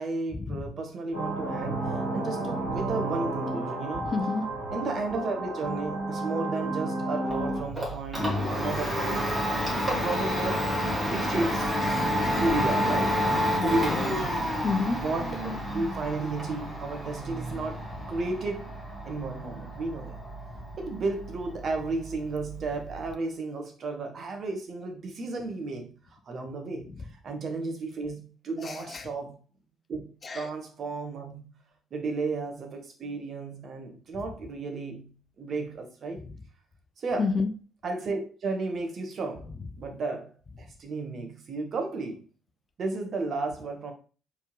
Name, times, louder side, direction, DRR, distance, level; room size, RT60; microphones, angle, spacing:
voice 1, 0.0-4.1 4.7-9.4 9.7-10.6 11.0-11.7 12.3-13.2 13.6-14.4 15.0-18.7 19.0-20.2 20.8-26.9 27.2-29.4 29.9-31.5 31.9-36.2 37.0-37.4 37.8-39.5 39.8-42.2 42.8-43.9, right 3 dB, 50° right, 1.1 m, -33 dB
sound 1, 1.1-7.6, right 2 dB, 85° right, 1.9 m, -32 dB
voice 2, 4.1-4.4 11.9-12.4 13.6-14.1 14.6-15.0 28.6-29.0 30.2-30.4 37.2-37.5, left 4 dB, 40° left, 0.6 m, -29 dB
Domestic sounds home sounds, 7.3-23.1, equal, 15° right, 2.2 m, -30 dB
4.4 x 3.5 x 3.0 m
figure-of-eight pair, 45°, 0 cm